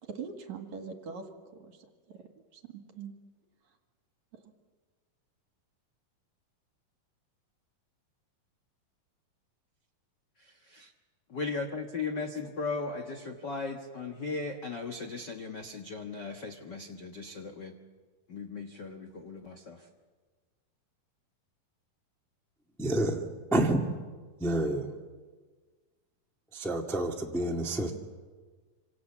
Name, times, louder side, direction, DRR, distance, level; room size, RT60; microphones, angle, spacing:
voice 1, 0.0-3.1 4.3-4.5, right 5 dB, 55° right, 5 dB, 2.9 m, -43 dB
voice 2, 10.4-10.9 11.3-17.8 18.3-19.9, left 4 dB, 75° left, 4 dB, 0.9 m, -37 dB
voice 3, 22.8-23.9 24.4-24.9 26.5-27.9, right 1 dB, ahead, 1 dB, 0.9 m, -29 dB
27.0 x 26.5 x 7.3 m, 1.4 s
omnidirectional pair, 4.2 m